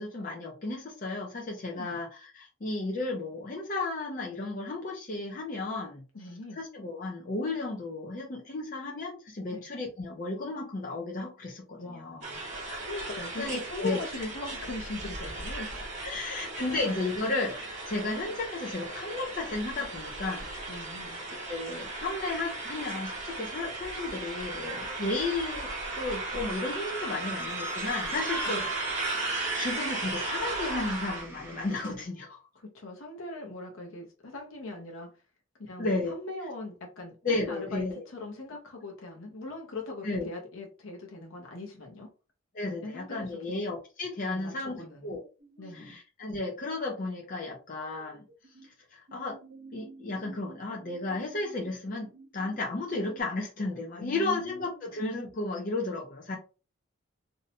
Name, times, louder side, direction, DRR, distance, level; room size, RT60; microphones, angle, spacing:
voice 1, 0.0-6.0 6.6-12.2 13.3-14.0 16.0-20.5 20.9-28.7 29.0-29.1 29.5-32.4 35.8-36.2 37.2-38.0 40.0-40.3 42.5-45.2 45.7-48.2 48.9-49.4 49.7-56.4, left 2 dB, 40° left, -1 dB, 0.5 m, -34 dB
voice 2, 1.7-2.0 6.1-6.6 9.5-9.6 11.8-12.4 12.8-15.8 16.0-16.1 16.5-16.8 20.7-21.2 28.5-28.7 32.5-35.1 35.6-42.1 42.8-43.6 44.2-45.2 45.6-46.0 54.0-55.0, left 3 dB, 75° left, 1 dB, 0.7 m, -40 dB
sound 1, 12.2-31.2, right 2 dB, 35° right, 0.9 m, -36 dB
Squeak, 25.9-31.9, right 1 dB, 10° right, 0.5 m, -42 dB
sound 2, 45.4-45.9 47.7-48.7 49.1-53.2, right 3 dB, 60° right, 0.9 m, -52 dB
2.6 x 2.1 x 2.8 m, 0.34 s
head